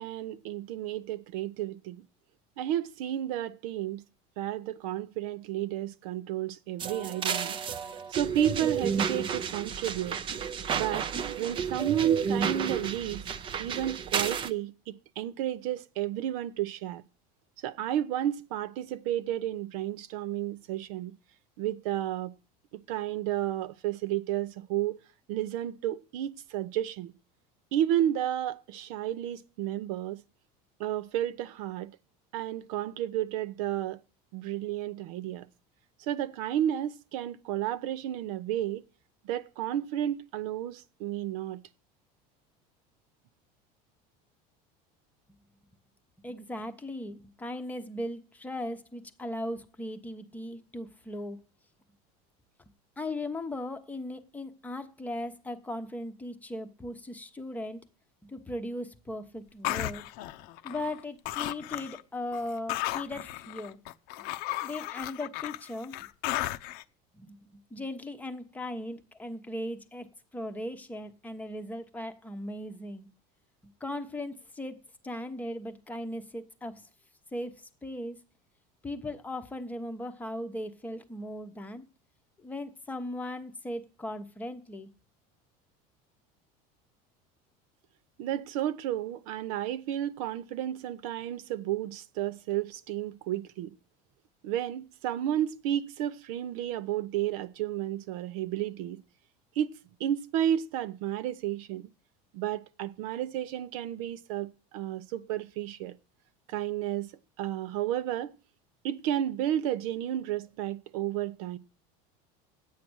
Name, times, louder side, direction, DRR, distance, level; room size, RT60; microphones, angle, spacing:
voice 1, 0.0-2.0 2.6-4.0 4.4-7.6 8.1-10.2 10.7-11.1 11.4-13.2 13.6-17.0 17.6-21.1 21.6-22.3 22.7-25.0 25.3-27.1 27.7-30.2 30.8-31.9 32.3-34.0 34.3-35.5 36.0-38.8 39.2-41.6 88.2-93.7 94.4-99.0 99.6-99.7 100.0-101.9 102.3-105.9 106.5-107.1 107.4-108.3 108.8-111.6, right 11 dB, 75° right, 0.8 m, -32 dB
sound 1, 6.8-14.5, right 7 dB, 25° right, 0.6 m, -32 dB
voice 2, 46.2-51.4 53.0-57.8 58.2-60.0 60.6-63.8 64.6-66.0 67.1-70.1 70.3-73.1 73.8-74.8 75.0-76.9 77.3-78.2 78.8-81.8 82.4-84.9, left 1 dB, 10° left, 0.9 m, -38 dB
sound 2, 59.6-61.0 61.2-62.0 62.3-66.8, left 16 dB, 55° left, 0.7 m, -35 dB
10.5 x 8.5 x 6.2 m
cardioid pair, 165°, 18 cm